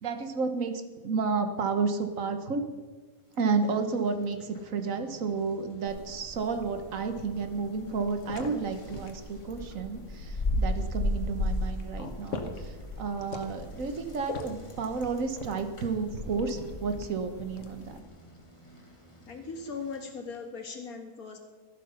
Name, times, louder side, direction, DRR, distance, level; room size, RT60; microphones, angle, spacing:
voice 1, 0.0-2.6 3.3-18.0, right 4 dB, 65° right, 8 dB, 1.5 m, -31 dB
Bicycle, 3.1-20.7, equal, 20° left, 2.0 m, -55 dB
sound 1, 5.9-18.0, left 1 dB, 60° left, 1.6 m, -35 dB
voice 2, 19.3-21.4, left 4 dB, 80° left, 4 dB, 2.2 m, -39 dB
13.5 x 11.5 x 5.7 m, 1.4 s
omnidirectional pair, 1.5 m